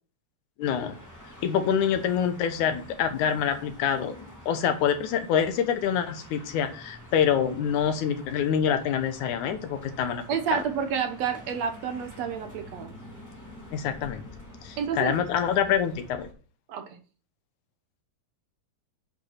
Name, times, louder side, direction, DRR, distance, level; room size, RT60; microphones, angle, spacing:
voice 1, 0.6-1.0 1.4-10.2 10.5-10.6 13.7-14.2 14.6-16.3, left 8 dB, 75° left, 8 dB, 2.5 m, -26 dB
sound 1, 0.6-16.3, left 1 dB, 5° left, 2.3 m, -47 dB
voice 2, 10.3-12.9 14.8-15.2 16.7-17.0, right 7 dB, 65° right, 6 dB, 2.0 m, -29 dB
8.9 x 5.4 x 5.8 m, 0.39 s
omnidirectional pair, 3.6 m